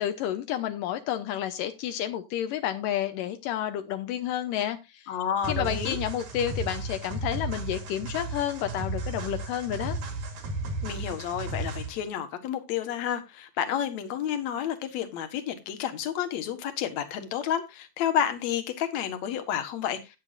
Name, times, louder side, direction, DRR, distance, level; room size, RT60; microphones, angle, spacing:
voice 1, 0.0-5.1 5.5-10.0, left 11 dB, 85° left, 1.9 m, -30 dB
voice 2, 5.1-6.0 10.8-20.2, left 9 dB, 55° left, 2.1 m, -30 dB
sound 1, 5.4-12.0, right 2 dB, 55° right, 4.0 m, -34 dB
14.0 x 10.0 x 2.6 m
omnidirectional pair, 5.0 m